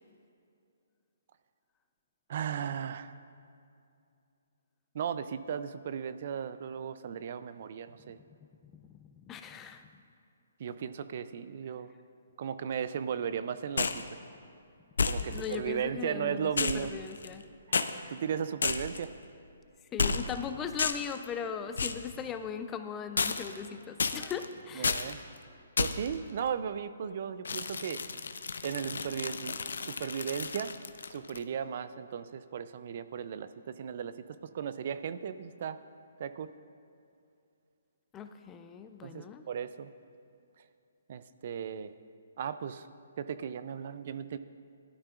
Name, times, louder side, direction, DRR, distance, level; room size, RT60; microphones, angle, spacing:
voice 1, 2.3-3.1 4.9-8.2 10.6-11.9 12.4-14.2 15.0-16.9 17.7-17.8 18.1-19.1 24.8-25.2 25.8-28.0 28.6-30.7 31.1-35.8 36.2-36.5 39.0-39.9 41.1-41.9 42.4-42.9 43.2-44.4, right 8 dB, 50° right, 13 dB, 0.4 m, -36 dB
voice 2, 8.6-9.8 15.3-17.4 19.9-24.9 38.1-39.4, left 7 dB, 20° left, 8 dB, 0.5 m, -39 dB
sound 1, 13.8-14.1 15.0-15.6 16.6-17.4 17.7-17.9 18.6-19.1 20.0-20.4 20.8-21.2 21.8-22.1 23.2-23.7 24.0-24.5 24.8-25.1 25.8-26.1 27.5-31.4, left 4 dB, 80° left, 0.6 m, -32 dB
16.5 x 12.0 x 2.4 m, 2.5 s
hypercardioid pair, 145°, 0 cm